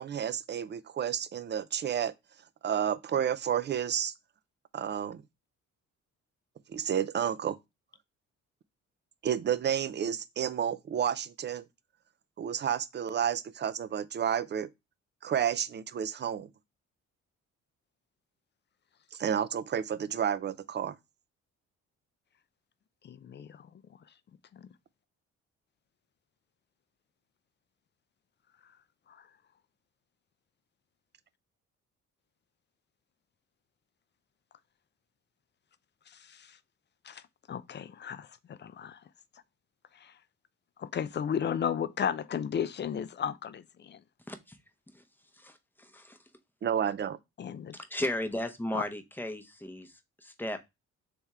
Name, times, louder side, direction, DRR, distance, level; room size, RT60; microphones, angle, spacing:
voice 1, 0.0-2.1 2.6-4.1 4.7-5.2 6.7-7.6 9.2-11.6 12.4-14.7 15.2-16.5 19.1-21.0 46.6-47.2, right 9 dB, 35° right, 0.4 m, -31 dB
voice 2, 23.0-23.5 37.1-37.2 37.5-39.0 40.0-40.1 40.8-44.0 47.4-47.7 48.7-48.8, left 8 dB, 35° left, 0.4 m, -34 dB
voice 3, 44.3-44.6 44.9-45.0 45.3-46.2 47.7-50.6, left 1 dB, 5° left, 0.7 m, -36 dB
3.5 x 3.5 x 4.1 m
cardioid pair, 90°, 30 cm